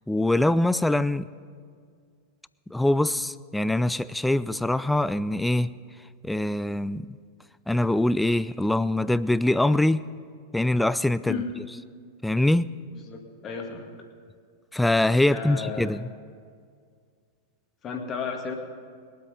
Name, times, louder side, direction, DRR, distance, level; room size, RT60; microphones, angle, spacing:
voice 1, 0.1-1.3 2.7-5.7 6.2-7.1 7.7-10.0 10.5-11.4 12.2-12.7 14.7-16.1, left 1 dB, 5° left, 0.3 m, -23 dB
voice 2, 12.9-13.9 15.3-16.0 17.8-18.5, left 5 dB, 30° left, 1.9 m, -33 dB
21.5 x 8.1 x 5.3 m
figure-of-eight pair, 90°, 0 cm